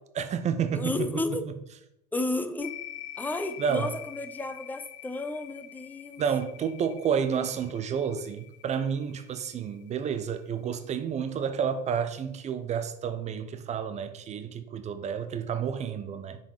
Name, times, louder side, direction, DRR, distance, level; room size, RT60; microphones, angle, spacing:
voice 1, 0.2-1.1 3.6-3.9 6.2-16.4, right 7 dB, 30° right, 0.7 m, -30 dB
voice 2, 0.7-1.4 2.1-2.8 3.2-6.2, left 2 dB, 10° left, 0.7 m, -32 dB
sound 1, 2.6-10.4, left 13 dB, 75° left, 0.5 m, -46 dB
6.4 x 4.2 x 4.9 m
hypercardioid pair, 75°, 21 cm